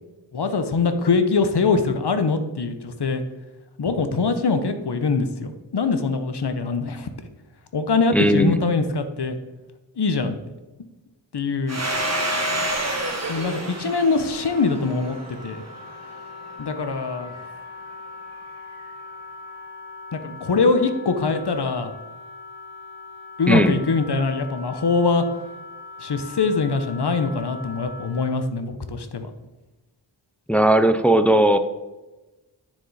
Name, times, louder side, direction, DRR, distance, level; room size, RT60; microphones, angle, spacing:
voice 1, 0.3-3.2 3.8-7.1 7.7-9.4 10.0-10.4 10.8-10.9 11.3-11.8 13.3-15.2 15.4-15.6 16.6-17.4 20.1-21.9 23.4-25.2 26.0-29.3, left 4 dB, 65° left, 8 dB, 0.9 m, -23 dB
voice 2, 8.1-8.6 23.5-23.7 30.5-31.6, right 1 dB, 5° left, 9 dB, 0.5 m, -17 dB
Domestic sounds home sounds, 11.7-16.1, right 1 dB, 35° right, 1.4 m, -28 dB
Wind instrument woodwind instrument, 14.3-28.4, left 3 dB, 80° left, 2.5 m, -41 dB
9.7 x 4.9 x 4.1 m, 1.1 s
wide cardioid pair, 65°, 44 cm